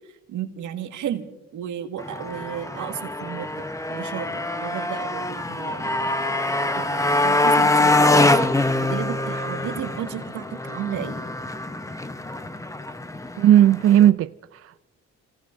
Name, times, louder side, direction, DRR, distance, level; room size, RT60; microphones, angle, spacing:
voice 1, 0.3-5.9 6.8-8.5 8.8-11.2, right 10 dB, 80° right, 1.7 m, -33 dB
Motorcycle, 2.0-14.1, left 2 dB, 10° left, 0.9 m, -24 dB
voice 2, 13.4-14.8, right 11 dB, 50° right, 0.4 m, -16 dB
29.5 x 17.0 x 2.6 m
cardioid pair, 90°, 30 cm